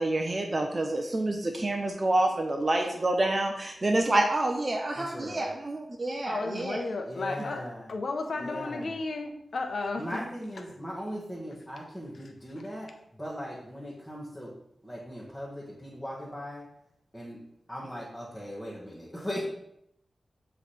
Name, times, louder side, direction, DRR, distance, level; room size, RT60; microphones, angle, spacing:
voice 1, 0.0-6.8, right 2 dB, 35° right, 2 dB, 0.6 m, -28 dB
voice 2, 4.9-5.5 7.0-7.9 8.4-9.0 10.0-14.5 14.8-16.7 17.1-17.4 17.7-19.4, equal, 5° left, -7 dB, 1.3 m, -39 dB
voice 3, 6.3-7.6 7.9-10.2, left 3 dB, 70° left, 4 dB, 0.8 m, -33 dB
7.1 x 3.2 x 4.2 m, 0.73 s
wide cardioid pair, 105°, 0 cm